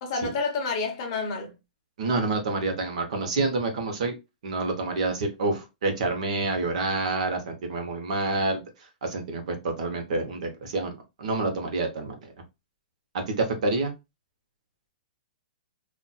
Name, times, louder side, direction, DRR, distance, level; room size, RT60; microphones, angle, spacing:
voice 1, 0.0-1.5, left 4 dB, 30° left, 0.8 m, -29 dB
voice 2, 2.0-4.1 4.4-8.6 9.0-12.2 13.1-13.9, right 3 dB, 50° right, 0.9 m, -28 dB
4.1 x 2.4 x 2.3 m
hypercardioid pair, 180°, 5 cm